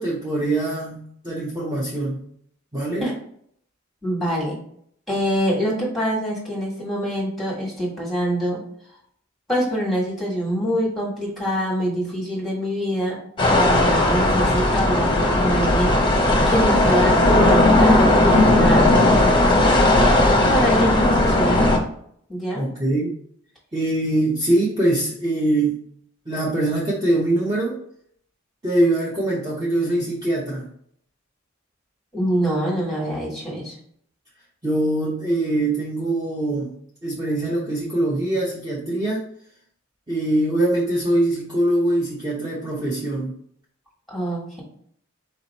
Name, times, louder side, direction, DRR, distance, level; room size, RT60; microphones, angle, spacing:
voice 1, 0.0-2.2 2.7-3.1 22.5-23.2 23.7-25.8 26.3-27.8 28.6-30.7 34.6-36.7 37.0-39.2 40.1-43.3, right 1 dB, 20° right, -6 dB, 0.8 m, -23 dB
voice 2, 4.0-4.6 5.1-8.6 9.5-16.0 16.5-18.9 20.5-21.8 22.3-22.7 32.1-33.7 44.1-44.6, equal, ahead, -4 dB, 1.5 m, -25 dB
sound 1, 13.4-21.8, left 1 dB, 25° left, 0.7 m, -16 dB
4.2 x 2.9 x 4.1 m, 0.65 s
head